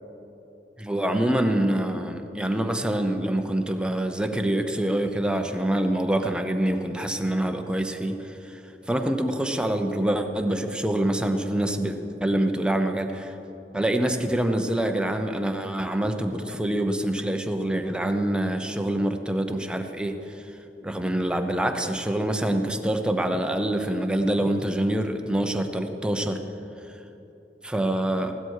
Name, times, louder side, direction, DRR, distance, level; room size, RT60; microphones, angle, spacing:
voice 1, 0.8-8.6 8.9-13.3 13.7-20.2 20.8-26.4 27.6-28.3, right 1 dB, 5° right, 5 dB, 0.8 m, -25 dB
16.0 x 12.5 x 4.7 m, 3.0 s
head